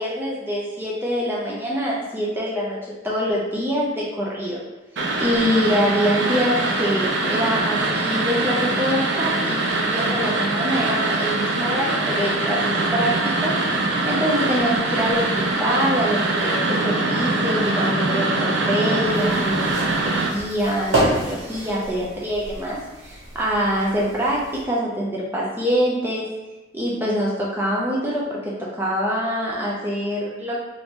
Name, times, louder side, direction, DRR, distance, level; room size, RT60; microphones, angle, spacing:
voice 1, 0.0-2.8 3.0-4.6 5.2-13.1 13.4-13.6 14.1-19.7 20.0-26.3 26.7-30.6, equal, 10° right, -5 dB, 0.4 m, -24 dB
sound 1, 5.0-20.3, right 2 dB, 65° right, 0.5 m, -23 dB
sound 2, 19.0-24.6, right 1 dB, 80° right, 1.4 m, -29 dB
2.9 x 2.6 x 3.5 m, 1.1 s
head